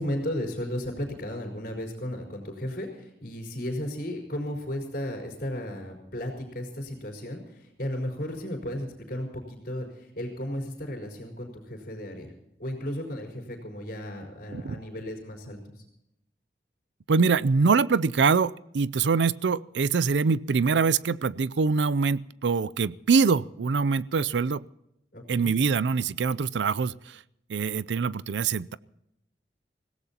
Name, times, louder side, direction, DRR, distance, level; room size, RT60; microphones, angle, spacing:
voice 1, 0.0-12.3 12.6-15.8 25.1-25.5, left 1 dB, 55° left, -1 dB, 4.5 m, -34 dB
voice 2, 17.1-24.7 25.3-27.2 27.5-28.8, right 5 dB, 85° right, 19 dB, 0.5 m, -24 dB
25.0 x 17.0 x 2.9 m, 0.83 s
head